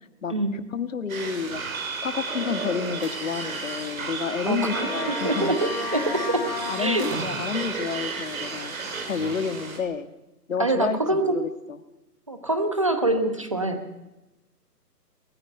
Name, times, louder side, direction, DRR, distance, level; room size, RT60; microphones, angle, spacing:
voice 1, 0.2-1.6 2.0-5.5 6.7-8.7 9.1-10.1 10.5-11.8, left 6 dB, 50° left, 12 dB, 1.6 m, -30 dB
sound 1, 1.1-9.8, right 4 dB, 55° right, 5.9 m, -33 dB
Slam, 2.6-3.6 5.1-5.6 6.9-7.9, right 4 dB, 40° right, 7.0 m, -40 dB
voice 2, 4.5-6.4 6.8-7.3 10.6-11.4 12.3-13.9, right 2 dB, 20° right, 7 dB, 1.0 m, -25 dB
Trumpet, 4.7-7.2, left 4 dB, 25° left, 4.4 m, -33 dB
21.5 x 14.5 x 9.0 m, 0.98 s
hypercardioid pair, 180°, 49 cm